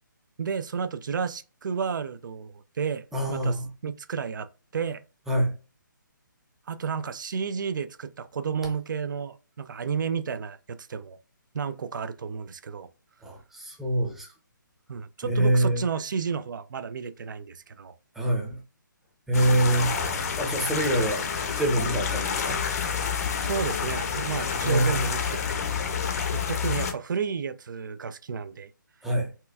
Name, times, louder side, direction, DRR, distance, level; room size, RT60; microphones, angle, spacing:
voice 1, 0.4-4.5 4.7-5.0 6.7-11.2 11.5-12.9 14.9-17.9 20.7-20.9 23.4-25.2 26.3-28.7, right 6 dB, 65° right, 0.4 m, -32 dB
voice 2, 3.1-3.6 5.3-5.5 13.2-14.3 15.2-15.8 18.2-18.6 19.3-19.9 20.4-21.2 21.5-22.6 24.6-25.0 29.0-29.3, right 1 dB, 5° right, 0.6 m, -25 dB
sound 1, 19.3-26.9, left 6 dB, 45° left, 0.6 m, -29 dB
4.3 x 2.3 x 2.3 m
hypercardioid pair, 150°, 11 cm